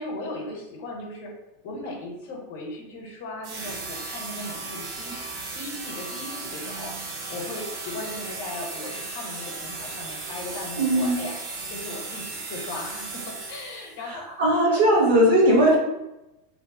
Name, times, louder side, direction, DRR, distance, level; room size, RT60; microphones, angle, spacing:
voice 1, 0.0-1.3 1.6-5.2 5.5-11.3 11.7-14.8, left 2 dB, 55° left, 0 dB, 0.8 m, -37 dB
sound 1, 3.4-14.0, right 3 dB, 35° right, 0.4 m, -36 dB
voice 2, 10.8-11.2 14.0-15.8, right 1 dB, 55° right, -3 dB, 1.0 m, -19 dB
2.5 x 2.0 x 3.6 m, 0.93 s
supercardioid pair, 175°, 0 cm